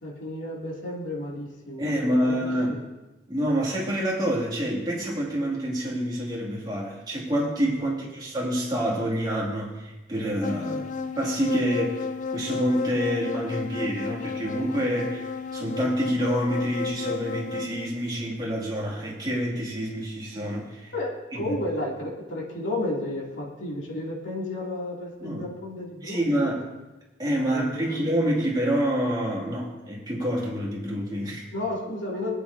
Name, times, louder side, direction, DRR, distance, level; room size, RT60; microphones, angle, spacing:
voice 1, 0.0-2.8 7.7-8.1 10.6-10.8 20.9-26.7 27.4-28.0 31.5-32.3, left 1 dB, 85° left, -4 dB, 2.8 m, -33 dB
voice 2, 1.8-2.8 3.3-10.8 11.2-12.0 12.3-20.9 21.4-21.6 25.2-25.5 26.0-26.6 27.2-31.4, equal, 20° right, -4 dB, 2.5 m, -27 dB
sound 1, 10.4-17.9, left 4 dB, 40° left, 0.5 m, -33 dB
20.5 x 8.7 x 2.8 m, 1.1 s
head